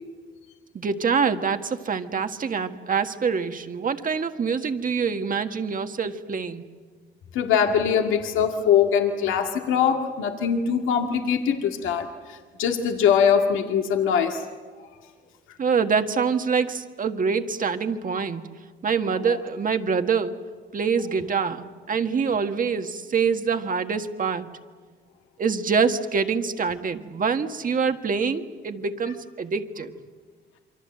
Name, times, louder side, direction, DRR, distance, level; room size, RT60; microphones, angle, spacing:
voice 1, 0.7-6.6 15.6-18.4 18.8-20.4 20.7-24.5 25.4-29.9, right 5 dB, 45° right, 7 dB, 1.7 m, -25 dB
voice 2, 7.3-14.4, left 7 dB, 85° left, 4 dB, 2.1 m, -22 dB
27.5 x 24.0 x 7.8 m, 1.5 s
cardioid pair, 90°, 20 cm